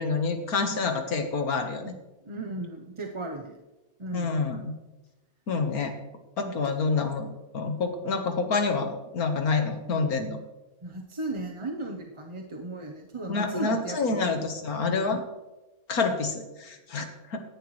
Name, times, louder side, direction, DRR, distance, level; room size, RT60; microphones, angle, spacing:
voice 1, 0.0-1.9 4.1-4.7 5.5-6.0 6.4-10.4 13.3-15.2 15.9-17.4, left 4 dB, 80° left, 5 dB, 2.0 m, -28 dB
voice 2, 2.2-3.6 4.0-4.3 6.4-6.5 10.8-14.3, right 2 dB, 25° right, 1 dB, 0.8 m, -35 dB
17.0 x 11.0 x 3.3 m, 1.0 s
omnidirectional pair, 1.5 m